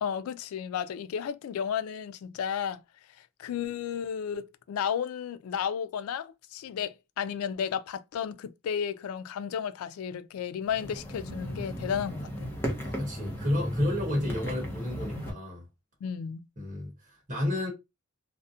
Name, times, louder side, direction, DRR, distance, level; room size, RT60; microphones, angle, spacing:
voice 1, 0.0-2.8 3.4-12.5 16.0-16.5, left 8 dB, 85° left, 0.3 m, -33 dB
sound 1, 10.7-15.3, equal, 10° left, 0.6 m, -35 dB
voice 2, 12.8-15.6 16.6-17.7, left 1 dB, 40° right, 1.0 m, -31 dB
2.4 x 2.1 x 2.6 m
head